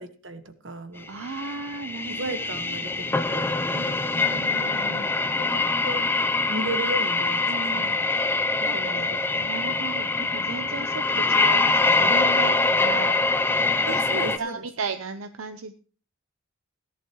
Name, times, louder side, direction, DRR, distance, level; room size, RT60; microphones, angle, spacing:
voice 1, 0.0-1.1 2.1-3.9 5.1-6.1 6.5-8.0 8.6-9.4 13.9-14.6, right 2 dB, 60° right, 9 dB, 1.3 m, -35 dB
voice 2, 1.1-2.3 2.7-2.8 3.7-5.1 7.5-7.9 8.3-9.1 9.4-13.2 13.9-15.7, right 4 dB, 80° right, 9 dB, 0.7 m, -35 dB
sound 1, 1.2-14.4, left 3 dB, 10° left, 0.5 m, -24 dB
17.5 x 11.0 x 3.0 m, 0.40 s
head